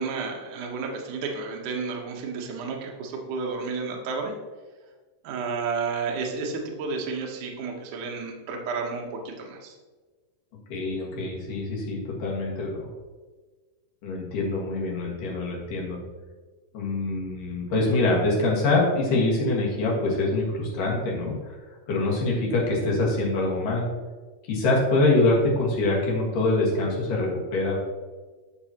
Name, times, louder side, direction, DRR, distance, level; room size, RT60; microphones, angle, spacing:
voice 1, 0.0-4.3 5.2-9.7, right 4 dB, 90° right, 0 dB, 1.7 m, -31 dB
voice 2, 10.7-12.9 14.0-16.0 16.7-21.3 21.9-23.9 24.5-27.8, left 2 dB, 55° left, -3 dB, 2.8 m, -24 dB
9.9 x 6.8 x 2.9 m, 1.3 s
omnidirectional pair, 5.2 m